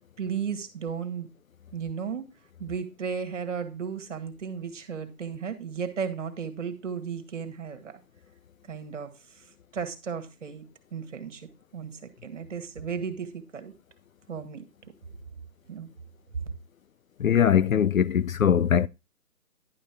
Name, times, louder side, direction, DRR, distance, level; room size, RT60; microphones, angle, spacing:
voice 1, 0.2-1.3 1.7-2.3 2.6-8.0 8.7-9.5 9.7-10.6 10.9-13.7 14.3-14.6 15.7-15.9, right 6 dB, 50° right, 1.9 m, -35 dB
voice 2, 17.2-18.9, left 8 dB, 60° left, 0.5 m, -21 dB
11.0 x 5.5 x 4.5 m
hypercardioid pair, 170°, 47 cm